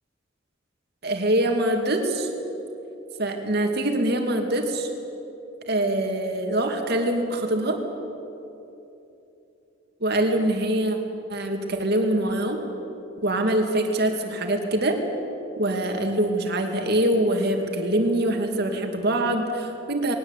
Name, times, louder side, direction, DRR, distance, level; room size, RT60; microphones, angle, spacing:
voice 1, 1.0-2.3 3.2-4.9 5.7-7.8 10.0-11.0 11.3-12.6 13.2-15.0 15.6-20.1, right 1 dB, 55° right, 4 dB, 2.4 m, -24 dB
20.5 x 18.5 x 8.4 m, 2.9 s
head